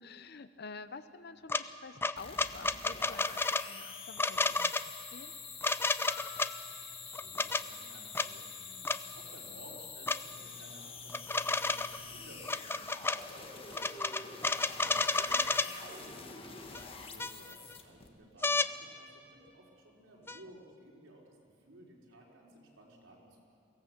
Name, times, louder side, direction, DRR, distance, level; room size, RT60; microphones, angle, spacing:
voice 1, 0.0-4.7 5.1-5.3 14.8-15.2, left 4 dB, 55° left, 12 dB, 0.8 m, -49 dB
sound 1, 1.5-1.6 2.0-3.7 4.2-4.8 5.6-6.5 7.2-7.6 8.1-8.3 8.8-9.0 10.1-10.2 11.1-12.0 12.4-13.2 13.7-15.7 16.7-16.8 17.2-17.7 18.4-18.7 20.3-20.4, left 3 dB, 10° left, 0.4 m, -31 dB
sound 2, 2.2-18.1, left 5 dB, 30° left, 1.6 m, -47 dB
Piano, 6.1-9.0 17.1-17.3, left 6 dB, 25° right, 2.9 m, -53 dB
voice 2, 7.0-8.8 9.1-14.5 15.0-23.4, right 1 dB, 85° right, -3 dB, 4.3 m, -56 dB
23.5 x 16.5 x 7.4 m, 2.5 s
head